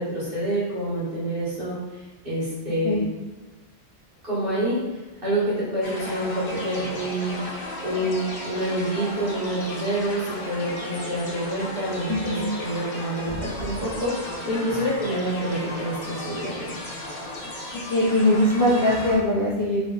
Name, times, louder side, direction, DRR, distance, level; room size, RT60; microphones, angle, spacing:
voice 1, 0.0-3.1 4.2-16.7, right 1 dB, 50° right, -8 dB, 1.8 m, -27 dB
sound 1, 5.8-19.2, left 1 dB, 55° left, 1.0 m, -35 dB
voice 2, 12.1-12.5 17.7-19.8, left 1 dB, 25° left, -6 dB, 0.4 m, -21 dB
3.2 x 3.1 x 3.8 m, 1.2 s
omnidirectional pair, 1.2 m